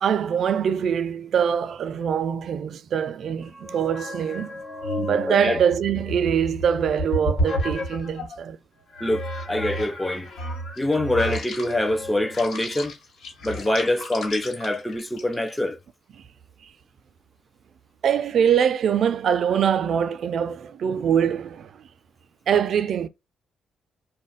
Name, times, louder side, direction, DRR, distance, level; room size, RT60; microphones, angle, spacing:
voice 1, 0.0-4.6 5.0-8.6 18.0-21.8 22.5-23.1, right 8 dB, 60° right, 0.3 m, -23 dB
sound 1, 3.4-8.4 8.9-15.6, equal, 65° left, 1.4 m, -32 dB
voice 2, 5.3-5.6 9.0-10.3 10.8-13.0 13.4-15.8, left 1 dB, 10° left, 0.5 m, -25 dB
2.4 x 2.1 x 3.9 m
cardioid pair, 90°, 0 cm